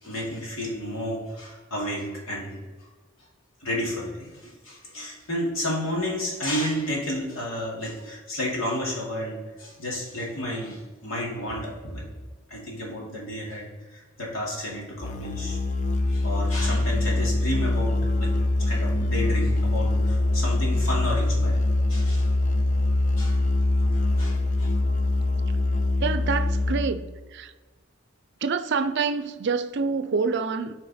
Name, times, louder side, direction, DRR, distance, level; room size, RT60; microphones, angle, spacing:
voice 1, 0.0-2.9 3.6-12.1 12.5-15.6 16.0-18.3 18.6-21.6 21.9-22.3 23.2-23.4 24.2-24.7, left 1 dB, 85° left, 2.6 m, -31 dB
Musical instrument, 15.0-27.0, left 2 dB, 40° left, 0.6 m, -23 dB
voice 2, 26.0-27.5 28.4-30.7, right 5 dB, 60° right, 0.5 m, -27 dB
12.0 x 4.5 x 4.3 m
head